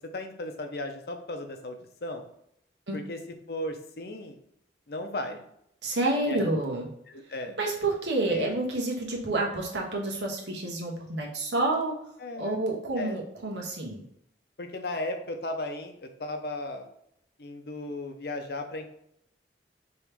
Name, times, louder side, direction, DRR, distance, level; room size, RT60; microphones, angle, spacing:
voice 1, 0.1-2.3 2.9-3.2 3.5-4.4 4.9-5.4 6.2-6.5 7.1-7.6 8.3-8.5 12.2-12.6 13.0-13.2 14.6-16.9 17.4-18.9, left 2 dB, 60° left, 6 dB, 0.6 m, -35 dB
voice 2, 5.8-6.9 7.6-11.9 12.4-14.0, right 2 dB, 85° right, -1 dB, 1.1 m, -29 dB
4.7 x 3.1 x 3.4 m, 0.76 s
head